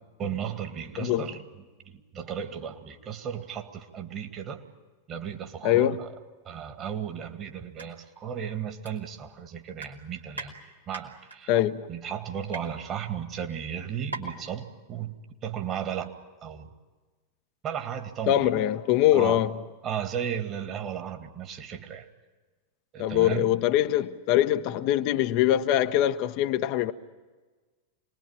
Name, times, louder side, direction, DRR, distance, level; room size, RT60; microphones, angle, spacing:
voice 1, 0.2-4.6 5.1-6.1 6.4-11.5 11.9-16.1 16.4-16.7 17.6-18.6 19.1-19.4 19.8-22.1 22.9-23.5, right 8 dB, 30° right, 2.0 m, -35 dB
voice 2, 1.0-1.3 5.6-6.0 11.5-11.9 18.3-19.6 23.0-26.9, left 13 dB, 45° left, 0.8 m, -23 dB
sound 1, 7.6-7.9 8.2-8.3 8.8-9.4 9.7-10.5 10.9-11.4 12.0-12.6 13.4-13.5 13.7-13.8 14.1-14.4 14.7-14.8, right 2 dB, 85° right, 2.9 m, -39 dB
27.0 x 21.0 x 8.9 m
figure-of-eight pair, 90°, 0 cm